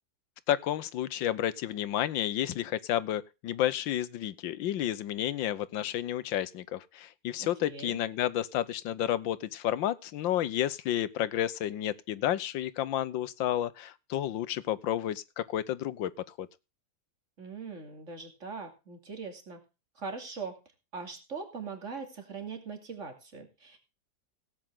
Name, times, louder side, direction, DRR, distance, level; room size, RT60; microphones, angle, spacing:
voice 1, 0.5-16.5, left 12 dB, 90° left, 1.6 m, -31 dB
voice 2, 7.4-8.0 17.4-19.6 20.0-20.6 20.9-23.8, right 4 dB, 40° right, 3.0 m, -41 dB
17.0 x 8.9 x 3.7 m
omnidirectional pair, 2.0 m